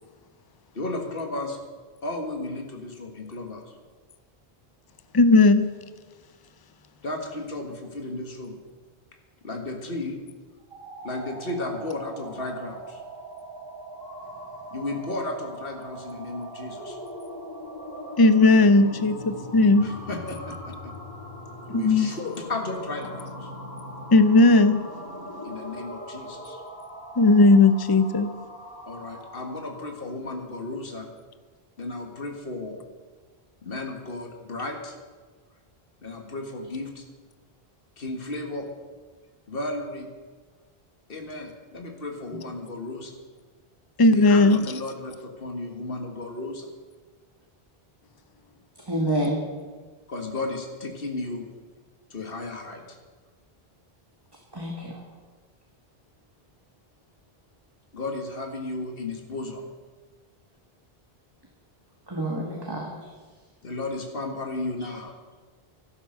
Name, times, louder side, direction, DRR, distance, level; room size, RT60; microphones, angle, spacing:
voice 1, 0.8-1.6 2.0-3.8 7.0-8.6 9.4-10.2 11.0-13.0 14.7-17.0 19.8-20.9 21.7-23.5 25.4-26.6 28.9-31.1 31.8-32.8 33.6-35.0 36.0-37.0 38.0-38.7 39.5-40.1 41.1-43.1 44.1-46.7 50.1-51.5 52.1-52.8 57.9-59.7 63.6-65.1, left 2 dB, 65° left, 1.9 m, -34 dB
voice 2, 5.1-5.7 18.2-19.9 21.7-22.1 24.1-24.8 27.2-28.3 44.0-44.7, left 3 dB, 25° left, 0.6 m, -17 dB
sound 1, 10.6-30.0, equal, 65° right, 4.4 m, -40 dB
voice 3, 48.8-49.4 54.5-55.0 62.1-63.1, right 1 dB, 25° right, 1.9 m, -28 dB
13.5 x 12.0 x 6.5 m
omnidirectional pair, 1.0 m